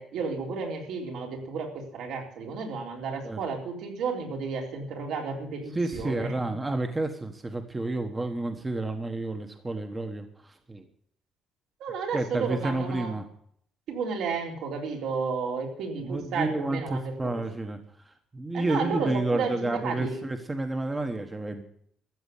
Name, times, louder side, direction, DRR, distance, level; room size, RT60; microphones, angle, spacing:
voice 1, 0.0-6.3 11.8-13.2 13.9-17.4 18.5-20.2, right 5 dB, 75° right, 1 dB, 3.8 m, -32 dB
voice 2, 5.7-10.9 12.1-13.2 16.0-21.6, right 2 dB, 15° right, 5 dB, 1.2 m, -30 dB
14.0 x 7.9 x 9.7 m, 0.66 s
cardioid pair, 155°, 0 cm